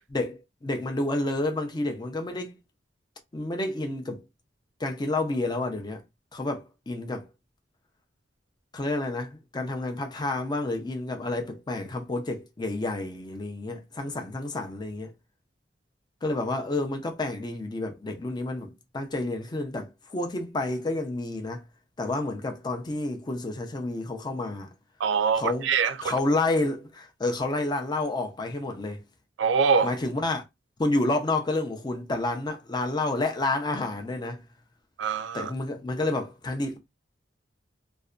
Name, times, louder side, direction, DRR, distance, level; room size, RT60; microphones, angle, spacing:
voice 1, 0.1-2.6 3.3-4.2 4.8-6.0 6.3-7.3 8.7-15.1 16.2-21.6 22.0-24.7 25.4-25.7 26.0-29.0 29.8-30.4 30.8-34.4 35.3-36.8, left 2 dB, 25° left, 0.5 m, -29 dB
voice 2, 25.0-26.1 29.4-29.9 35.0-35.5, right 6 dB, 75° right, 0.4 m, -24 dB
2.6 x 2.1 x 2.3 m
head